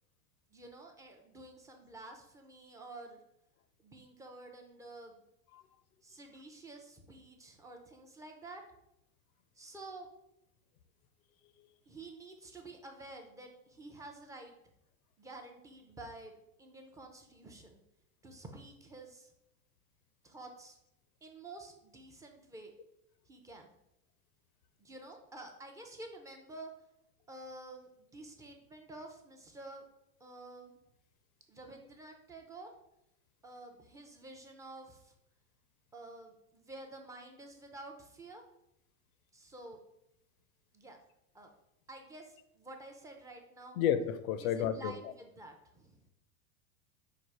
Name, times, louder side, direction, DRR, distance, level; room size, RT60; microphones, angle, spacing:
voice 1, 0.5-3.2 3.8-5.2 6.0-8.6 9.6-10.1 11.9-14.5 15.2-17.8 18.2-19.3 20.2-20.8 21.2-22.7 23.3-23.7 24.8-26.7 27.3-29.8 30.2-30.8 31.5-32.7 33.4-35.1 35.9-38.4 39.3-39.8 40.7-41.0 41.3-41.5 41.9-43.8 44.4-46.1, right 2 dB, 10° right, 3 dB, 0.3 m, -50 dB
voice 2, 43.8-45.1, left 9 dB, 90° left, 11 dB, 0.5 m, -31 dB
4.8 x 2.4 x 4.5 m, 0.84 s
supercardioid pair, 120°, 41 cm